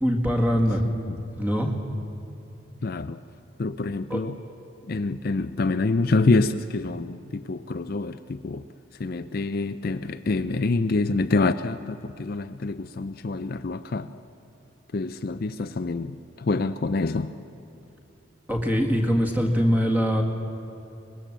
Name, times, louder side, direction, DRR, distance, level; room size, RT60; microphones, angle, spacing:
voice 1, 0.0-0.8 1.4-1.7 4.1-4.2 18.5-20.2, equal, 10° right, 2 dB, 1.9 m, -22 dB
voice 2, 0.8-1.2 2.8-3.2 3.6-4.4 4.9-8.6 9.0-14.1 14.9-17.3, left 3 dB, 45° left, 10 dB, 0.5 m, -26 dB
24.0 x 20.5 x 7.4 m, 2.9 s
head